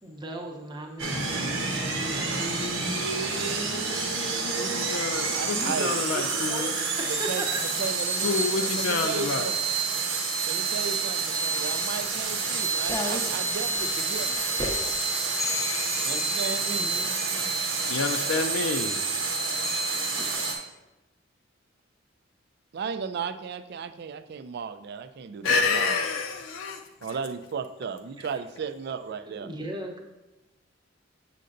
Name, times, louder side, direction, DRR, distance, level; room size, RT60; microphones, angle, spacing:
voice 1, 0.0-1.4 5.5-6.1 6.5-6.8 7.2-7.6 16.8-17.5 27.1-27.2 29.3-30.0, right 1 dB, 25° right, 2 dB, 0.8 m, -37 dB
sound 1, 1.0-20.5, right 4 dB, 90° right, 1.1 m, -28 dB
voice 2, 3.1-3.7 5.3-6.0 7.1-8.3 8.5-9.6 10.5-14.5 16.0-16.9 22.7-26.0 27.0-29.5, right 5 dB, 55° right, 10 dB, 0.4 m, -35 dB
voice 3, 4.6-6.7 8.2-9.5 17.9-19.0 25.4-26.8, left 4 dB, 75° left, 5 dB, 0.4 m, -28 dB
sound 2, 11.6-20.3, left 2 dB, 15° left, 0.6 m, -38 dB
6.7 x 6.4 x 2.6 m, 1.0 s
head